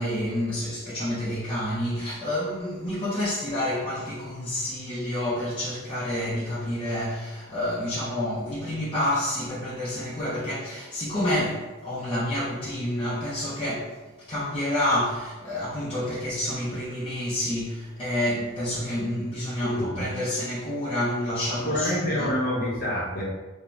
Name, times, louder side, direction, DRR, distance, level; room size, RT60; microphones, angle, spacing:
voice 1, 0.0-14.0 14.3-22.3, left 1 dB, 25° left, 0.5 m, -29 dB
voice 2, 21.6-23.2, left 1 dB, 45° left, 0.8 m, -27 dB
2.5 x 2.0 x 3.2 m
head